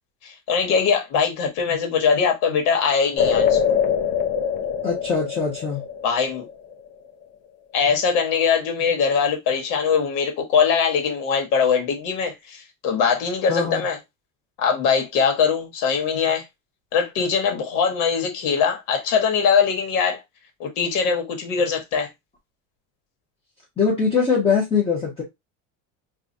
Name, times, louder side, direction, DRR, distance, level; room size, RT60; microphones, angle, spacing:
voice 1, 0.2-3.8 6.0-6.5 7.7-14.0 14.6-16.4 16.9-20.2 20.6-22.1, left 6 dB, 70° left, 1.4 m, -22 dB
sound 1, 3.2-6.7, left 7 dB, 55° left, 0.8 m, -23 dB
voice 2, 4.8-5.8 13.5-13.8 23.8-25.2, left 5 dB, 15° left, 0.9 m, -22 dB
4.8 x 2.4 x 2.7 m
cardioid pair, 160°, 38 cm